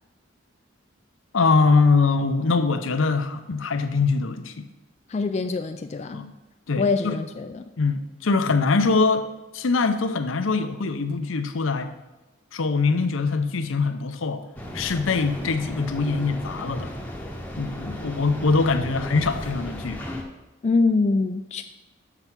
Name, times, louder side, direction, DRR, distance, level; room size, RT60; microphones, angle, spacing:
voice 1, 1.3-4.7 6.1-6.3 6.7-7.2 7.8-9.3 9.5-11.9 12.5-14.4 14.7-16.9 17.6-20.0, left 4 dB, 75° left, 9 dB, 0.6 m, -23 dB
voice 2, 5.1-6.2 6.8-7.6 20.6-21.6, left 3 dB, 35° left, 7 dB, 0.3 m, -24 dB
sound 1, 14.6-20.2, left 1 dB, 10° left, 0.9 m, -35 dB
6.7 x 6.0 x 5.9 m, 1.1 s
head